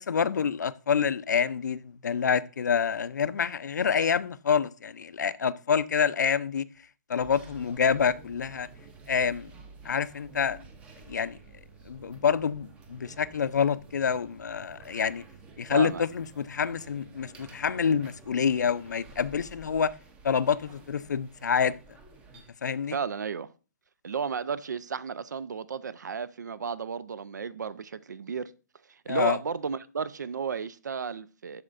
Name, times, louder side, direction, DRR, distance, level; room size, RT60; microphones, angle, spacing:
voice 1, 0.0-6.6 7.1-8.7 9.1-9.5 9.8-10.6 11.1-11.4 11.9-15.2 15.6-19.9 20.2-21.7 22.6-23.0 29.1-29.4, left 7 dB, 80° left, 0.5 m, -27 dB
sound 1, 7.2-22.5, right 4 dB, 10° right, 0.6 m, -51 dB
voice 2, 15.7-16.0 22.9-23.5 24.0-28.5 28.9-31.6, right 6 dB, 85° right, 0.5 m, -33 dB
13.0 x 4.4 x 2.5 m
hypercardioid pair, 160°, 9 cm